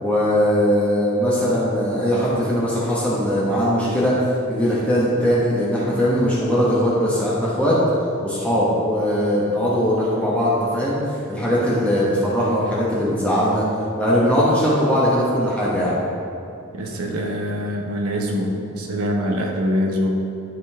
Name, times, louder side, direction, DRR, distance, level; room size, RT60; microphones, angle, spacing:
voice 1, 0.0-4.1 4.5-7.8 8.2-11.0 11.3-13.6 14.0-15.9, equal, 5° left, -8 dB, 1.2 m, -20 dB
voice 2, 16.7-20.2, equal, 90° right, 1 dB, 1.1 m, -24 dB
11.5 x 5.3 x 3.6 m, 2.6 s
head